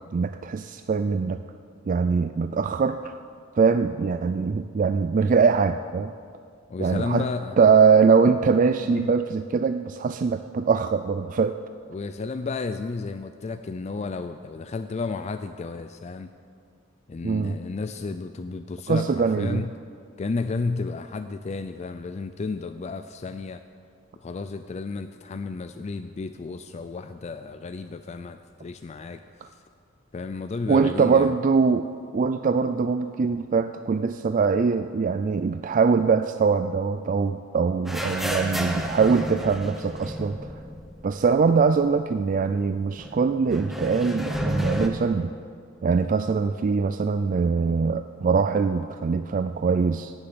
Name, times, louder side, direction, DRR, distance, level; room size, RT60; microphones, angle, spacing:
voice 1, 0.1-1.4 1.9-3.2 3.5-6.1 6.8-7.2 7.6-11.6 17.2-17.5 18.9-19.6 30.7-40.4 41.0-45.3 45.8-50.1, right 5 dB, 40° right, 9 dB, 0.3 m, -22 dB
voice 2, 6.7-7.6 8.9-9.1 11.9-16.3 17.1-19.7 20.2-23.6 24.2-29.6 30.1-31.4, left 4 dB, 35° left, 9 dB, 0.4 m, -32 dB
sound 1, 37.9-41.6 41.9-42.0 43.0-44.9, equal, ahead, 1.0 m, -31 dB
17.5 x 7.1 x 6.9 m, 2.2 s
head